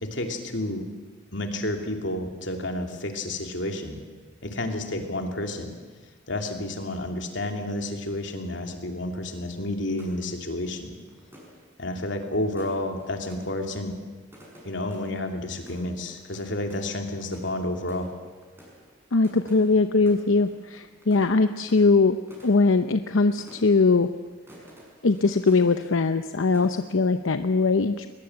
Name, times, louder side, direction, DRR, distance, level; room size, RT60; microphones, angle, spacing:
voice 1, 0.0-0.8 1.3-4.0 4.4-5.7 6.3-10.9 11.8-13.9 14.6-18.1, left 1 dB, 65° left, 4 dB, 2.9 m, -30 dB
sound 1, 9.9-26.3 26.5-27.1, equal, 10° right, 6.1 m, -51 dB
voice 2, 19.1-22.2 22.4-24.1 25.0-28.1, left 3 dB, 90° left, 9 dB, 0.8 m, -21 dB
21.5 x 21.0 x 7.9 m, 1.3 s
head